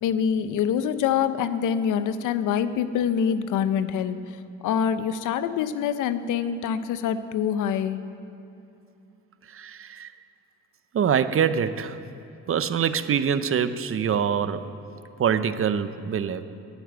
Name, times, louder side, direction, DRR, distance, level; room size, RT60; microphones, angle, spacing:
voice 1, 0.0-4.4 4.6-8.1, left 8 dB, 90° left, 12 dB, 0.7 m, -25 dB
voice 2, 9.5-10.1 10.9-12.0 12.5-14.7 15.2-16.4, right 7 dB, 45° right, 12 dB, 0.7 m, -24 dB
11.5 x 10.0 x 8.9 m, 2.7 s
cardioid pair, 90°, 30 cm